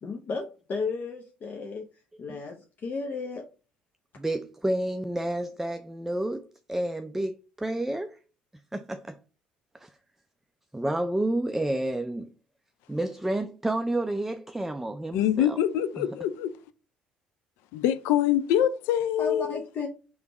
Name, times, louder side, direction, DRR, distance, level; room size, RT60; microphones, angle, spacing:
voice 1, 0.0-1.9 2.2-3.5 19.2-19.9, left 4 dB, 45° left, 0.7 m, -33 dB
voice 2, 4.2-8.2 8.7-9.2 9.7-9.9 10.7-12.3 12.9-15.6 16.0-16.1, right 1 dB, 5° right, 0.4 m, -30 dB
voice 3, 15.1-16.5 17.7-19.6, left 11 dB, 70° left, 0.4 m, -25 dB
3.4 x 3.1 x 4.7 m
hypercardioid pair, 55°, 4 cm